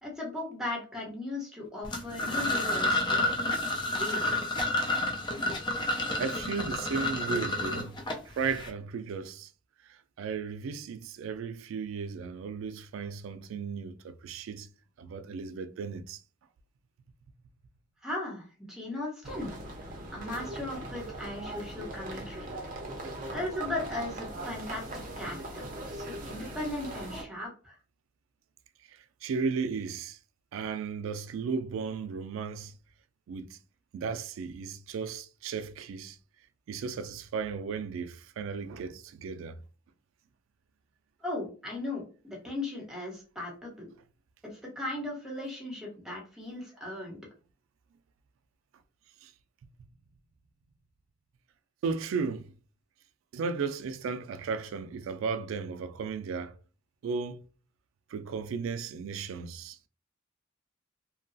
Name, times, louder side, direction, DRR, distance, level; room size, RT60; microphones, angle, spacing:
voice 1, 0.0-4.3 18.0-19.5 20.1-22.5 23.3-25.4 25.8-27.7 41.2-43.9 44.4-47.2, left 2 dB, 5° right, 1.0 m, -37 dB
sound 1, 1.8-8.7, left 2 dB, 25° left, 0.4 m, -30 dB
voice 2, 6.2-8.0 8.2-9.5 9.8-14.7 15.0-16.2 28.9-30.2 30.5-32.8 33.3-33.6 33.9-36.2 36.7-39.6 49.2-49.3 51.8-52.6 53.3-56.5 57.0-57.4 58.1-59.8, right 5 dB, 90° right, 0.3 m, -35 dB
sound 2, 19.2-27.2, right 1 dB, 40° right, 0.5 m, -40 dB
2.8 x 2.2 x 2.6 m
head